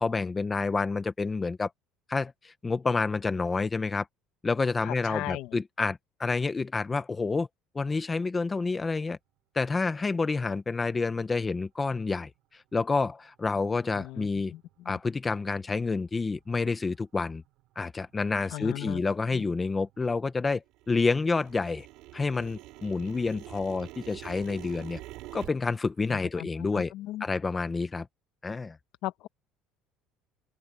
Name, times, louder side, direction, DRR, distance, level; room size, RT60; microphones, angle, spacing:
voice 1, 0.0-1.7 2.1-4.1 4.4-7.5 7.7-9.2 9.5-14.5 14.9-17.4 17.8-21.9 22.1-25.0 25.3-26.9 27.2-28.1 28.4-28.8, left 4 dB, 15° left, 0.6 m, -29 dB
voice 2, 4.8-5.6 14.0-15.0 18.5-19.0 19.3-19.4 26.1-27.2 29.0-29.3, left 16 dB, 60° left, 1.0 m, -38 dB
sound 1, 14.6-14.7 15.4-15.5 16.1-16.4 16.9-17.0 17.2-17.8 18.0-20.4 20.7-25.5, right 18 dB, 60° right, 3.3 m, -46 dB
open air
cardioid pair, 165°, 0 cm